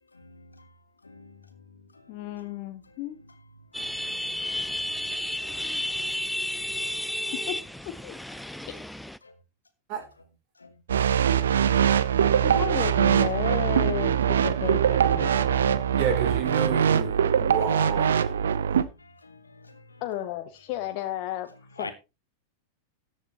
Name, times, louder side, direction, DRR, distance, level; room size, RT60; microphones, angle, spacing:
voice 1, 0.1-0.7 1.0-2.6 2.9-3.0 3.7-6.2 6.6-7.0 9.2-9.3 9.9-10.1 10.6-10.7 11.1-11.2 11.5-11.7 12.0-12.4 15.2-16.0 17.4-17.6 18.3-18.4 18.7-20.0 21.8-21.9, left 3 dB, 80° left, 1.6 m, -49 dB
voice 2, 2.1-3.2 7.3-7.6 7.9-8.2 8.7-8.8 12.4-15.8 20.0-21.5 21.8-21.9, left 13 dB, 45° left, 0.9 m, -33 dB
sound 1, 3.7-9.2, left 1 dB, ahead, 0.5 m, -32 dB
sound 2, 10.9-18.8, right 8 dB, 65° right, 0.7 m, -22 dB
voice 3, 15.9-18.1, right 7 dB, 40° right, 3.3 m, -30 dB
14.0 x 9.7 x 2.9 m
figure-of-eight pair, 90°, 0 cm